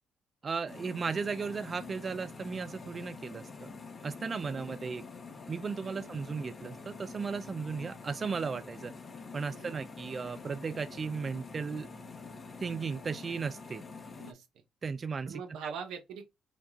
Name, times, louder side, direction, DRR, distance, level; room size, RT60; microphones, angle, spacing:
voice 1, 0.4-3.7 4.0-5.0 5.5-8.9 9.3-11.9 12.6-13.8 14.8-15.7, right 5 dB, 40° right, 0.3 m, -36 dB
sound 1, 0.7-14.3, left 4 dB, 40° left, 1.0 m, -46 dB
voice 2, 4.3-4.8 5.8-6.3 9.5-9.8 14.2-14.6 15.2-16.4, right 6 dB, 85° right, 1.1 m, -45 dB
5.2 x 2.4 x 3.5 m
cardioid pair, 90°, 0 cm